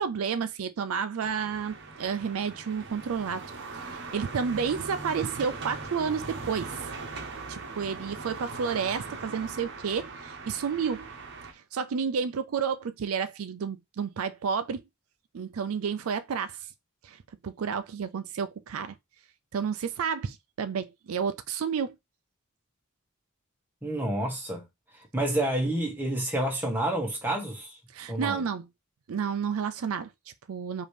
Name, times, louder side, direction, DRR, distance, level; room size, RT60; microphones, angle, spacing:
voice 1, 0.0-3.4 3.7-6.9 7.5-11.1 11.5-14.8 15.3-16.7 17.0-18.9 19.5-22.0 27.9-28.7 29.1-30.9, right 6 dB, 70° right, 0.4 m, -31 dB
sound 1, 1.2-11.5, right 3 dB, 55° right, 0.9 m, -40 dB
voice 2, 23.8-24.7 24.9-27.8 28.1-28.4, right 1 dB, 10° right, 1.3 m, -29 dB
5.0 x 2.8 x 3.3 m
head